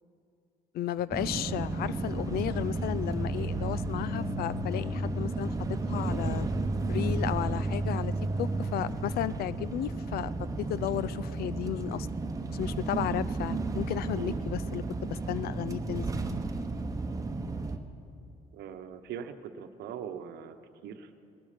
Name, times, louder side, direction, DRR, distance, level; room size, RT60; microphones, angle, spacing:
voice 1, 0.7-5.5 5.9-6.5 6.9-8.1 8.4-10.3 10.6-12.1 12.5-16.0, left 12 dB, 65° left, 18 dB, 0.5 m, -34 dB
sound 1, 1.1-17.8, right 2 dB, 20° right, 1.0 m, -32 dB
voice 2, 18.5-20.6 20.8-21.1, right 8 dB, 75° right, 9 dB, 0.9 m, -41 dB
20.0 x 11.5 x 5.1 m, 2.5 s
cardioid pair, 110°, 17 cm